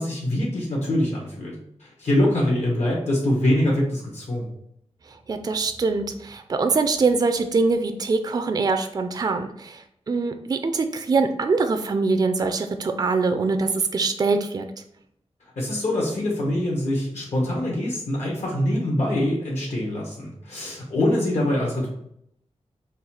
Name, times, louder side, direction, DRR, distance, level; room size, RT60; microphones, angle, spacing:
voice 1, 0.0-1.5 1.8-4.5 15.6-21.9, left 1 dB, 75° left, -3 dB, 1.2 m, -24 dB
voice 2, 5.1-14.7, right 4 dB, 35° right, 7 dB, 0.3 m, -23 dB
3.9 x 2.4 x 4.2 m, 0.73 s
wide cardioid pair, 105°, 11 cm